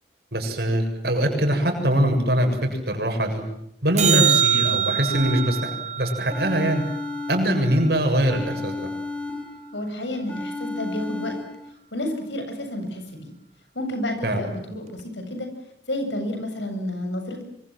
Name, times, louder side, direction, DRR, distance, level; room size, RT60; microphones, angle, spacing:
voice 1, 0.3-3.4 3.8-6.8 7.3-8.9 14.2-14.5, right 1 dB, 60° right, 4 dB, 7.2 m, -23 dB
sound 1, 4.0-8.4 15.0-15.1, right 8 dB, 40° right, 1.1 m, -25 dB
sound 2, 5.1-5.9 6.3-7.9 8.3-9.9 10.3-11.7, left 2 dB, 10° left, 3.3 m, -33 dB
voice 2, 9.7-11.4 11.9-13.3 13.7-15.5 15.9-17.4, left 1 dB, 85° left, 6 dB, 7.6 m, -30 dB
25.5 x 25.0 x 7.7 m, 0.77 s
head